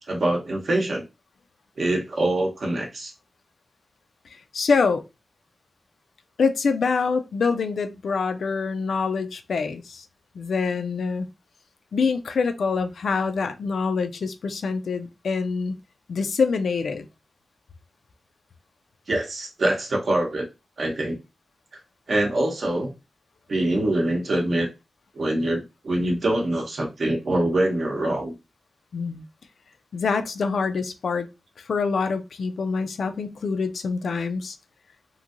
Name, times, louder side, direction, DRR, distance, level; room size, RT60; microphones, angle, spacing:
voice 1, 0.1-1.0 1.8-3.1 19.1-20.5 20.8-21.2 22.1-22.9 23.5-24.7 25.1-28.3, right 1 dB, 60° right, 0.7 m, -24 dB
voice 2, 4.3-5.0 6.4-10.0 10.3-11.3 11.9-15.8 16.1-17.1 28.9-29.2 29.9-31.3 31.6-34.6, left 5 dB, 85° left, 0.3 m, -25 dB
3.0 x 2.6 x 2.4 m
wide cardioid pair, 170°, 0 cm